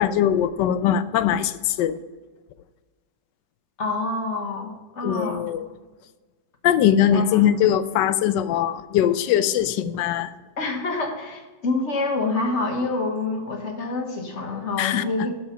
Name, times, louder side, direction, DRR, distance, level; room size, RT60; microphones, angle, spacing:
voice 1, 0.0-2.0 5.0-5.7 6.6-10.3 14.8-15.0, left 10 dB, 80° left, 14 dB, 1.2 m, -21 dB
voice 2, 3.8-5.4 7.1-7.4 10.6-15.3, left 3 dB, 45° left, 3 dB, 1.4 m, -27 dB
12.0 x 4.8 x 5.6 m, 1.3 s
omnidirectional pair, 1.9 m